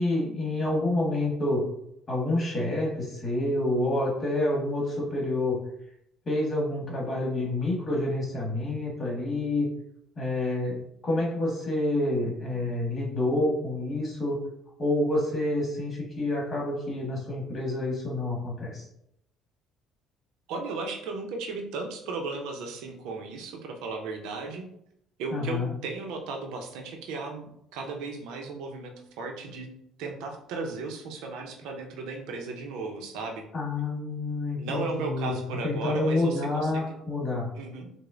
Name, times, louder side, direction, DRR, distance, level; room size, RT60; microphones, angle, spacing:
voice 1, 0.0-1.6 2.1-5.6 6.2-9.7 10.2-10.8 11.0-14.4 14.8-18.8 25.3-25.7 33.5-35.4 35.6-37.5, left 2 dB, 35° left, -3 dB, 1.4 m, -28 dB
voice 2, 20.5-24.6 25.2-29.7 30.0-33.4 34.6-37.0 37.6-37.9, right 3 dB, 80° right, 3 dB, 0.5 m, -35 dB
4.9 x 2.0 x 2.4 m, 0.74 s
cardioid pair, 95°, 0 cm